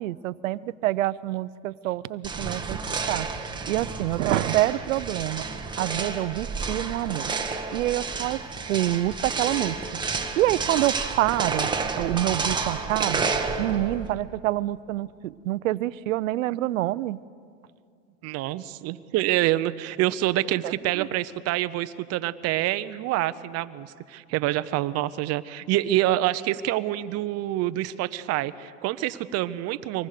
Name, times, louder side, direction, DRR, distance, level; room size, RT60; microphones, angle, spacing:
voice 1, 0.0-2.8 3.1-3.3 3.7-5.5 5.8-7.3 7.7-8.4 8.7-9.8 10.4-11.7 12.0-13.2 13.6-17.2 20.6-21.1, right 15 dB, 80° right, 17 dB, 0.7 m, -26 dB
sound 1, 2.2-14.1, right 4 dB, 10° right, 1.4 m, -30 dB
voice 2, 18.2-30.1, right 15 dB, 40° right, 14 dB, 0.8 m, -26 dB
25.0 x 19.5 x 6.7 m, 2.4 s
supercardioid pair, 125°, 39 cm